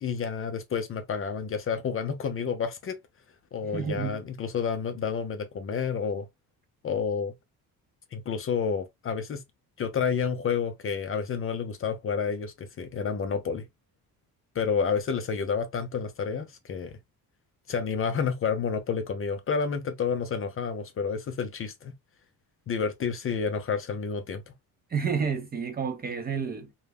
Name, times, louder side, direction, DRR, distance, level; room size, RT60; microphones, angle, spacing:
voice 1, 0.0-3.0 3.5-6.3 6.8-7.3 8.1-9.4 9.8-13.7 14.6-17.0 17.7-21.9 22.7-24.4, left 6 dB, 35° left, 0.4 m, -30 dB
voice 2, 3.6-4.2 24.9-26.7, right 6 dB, 25° right, 0.4 m, -30 dB
2.2 x 2.0 x 3.3 m
cardioid pair, 120°, 38 cm